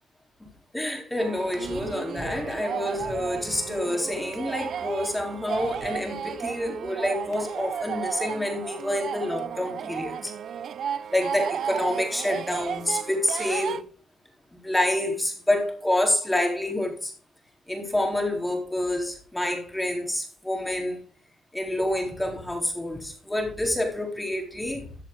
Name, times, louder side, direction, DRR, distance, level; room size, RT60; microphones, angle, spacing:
voice 1, 0.7-10.3 11.1-13.8 14.5-17.1 17.7-21.0 21.5-24.9, left 1 dB, 10° left, 3.7 m, -28 dB
sound 1, 1.2-13.8, right 8 dB, 60° right, 0.6 m, -33 dB
14.0 x 7.2 x 3.8 m
cardioid pair, 90°, 0 cm